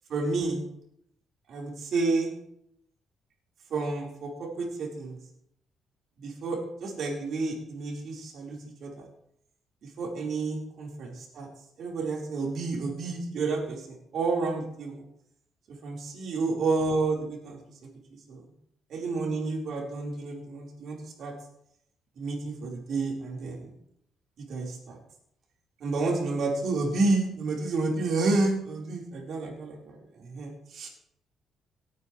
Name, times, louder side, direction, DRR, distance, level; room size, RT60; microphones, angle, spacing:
voice 1, 0.1-0.6 1.5-2.3 3.7-5.2 6.2-9.0 10.0-11.5 11.8-15.0 15.8-17.6 18.3-18.4 18.9-21.3 22.2-23.7 24.5-25.0 25.8-30.9, right 3 dB, 65° right, -1 dB, 4.2 m, -30 dB
18.0 x 9.9 x 3.2 m, 0.73 s
cardioid pair, 90°, 0 cm